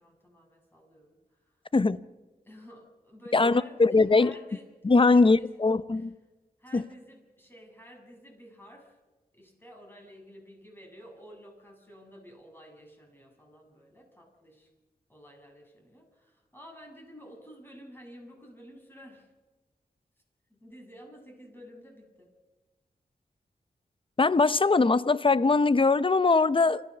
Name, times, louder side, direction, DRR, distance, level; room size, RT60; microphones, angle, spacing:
voice 1, 0.0-1.5 2.4-4.7 5.0-5.5 5.9-6.1 6.6-9.0 9.3-14.7 15.1-19.3 20.5-22.3, equal, 15° left, 7.8 m, -51 dB
voice 2, 3.3-4.3 4.8-6.1 6.7-6.8 24.2-26.8, left 3 dB, 35° left, 0.8 m, -21 dB
28.0 x 15.5 x 6.9 m
cardioid pair, 60°, 16 cm